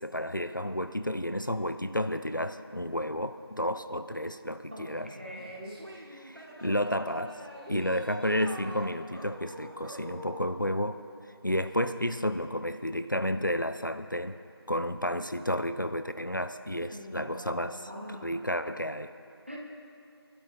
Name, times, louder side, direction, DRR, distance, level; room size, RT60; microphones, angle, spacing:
voice 1, 0.0-5.1 6.1-7.4 7.7-11.0 11.4-14.4 14.7-19.1, equal, 50° left, 10 dB, 0.4 m, -31 dB
voice 2, 4.7-5.9 16.7-18.4 19.5-19.6, equal, 30° right, -2 dB, 1.3 m, -43 dB
sound 1, 4.9-10.6, equal, 60° right, 3.1 m, -45 dB
24.5 x 12.0 x 2.5 m, 2.5 s
figure-of-eight pair, 180°, 14 cm